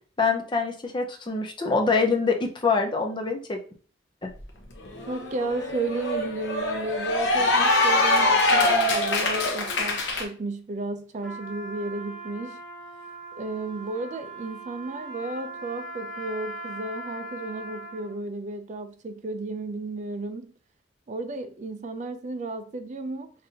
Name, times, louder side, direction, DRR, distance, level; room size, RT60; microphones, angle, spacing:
voice 1, 0.2-3.6, left 4 dB, 25° left, 0.5 m, -25 dB
Cheering / Applause, 4.4-4.5 4.8-10.2, left 2 dB, 70° left, 0.8 m, -23 dB
voice 2, 5.1-12.6 13.3-20.5 21.1-23.3, right 2 dB, 40° right, 0.4 m, -33 dB
Trumpet, 11.2-18.2, right 1 dB, ahead, 1.2 m, -40 dB
5.1 x 2.6 x 2.7 m
head